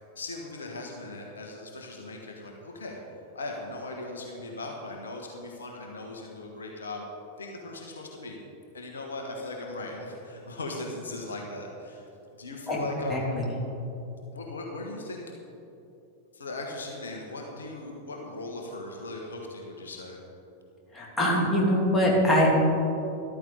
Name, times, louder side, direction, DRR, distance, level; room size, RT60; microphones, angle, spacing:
voice 1, 0.1-3.0 3.3-7.0 7.4-8.4 8.7-13.3 14.3-15.2 16.3-20.2, left 2 dB, 70° left, 1 dB, 1.5 m, -38 dB
voice 2, 13.1-13.5 20.9-22.5, equal, 10° left, -3 dB, 2.9 m, -23 dB
13.5 x 12.5 x 4.1 m, 2.9 s
figure-of-eight pair, 90°, 0 cm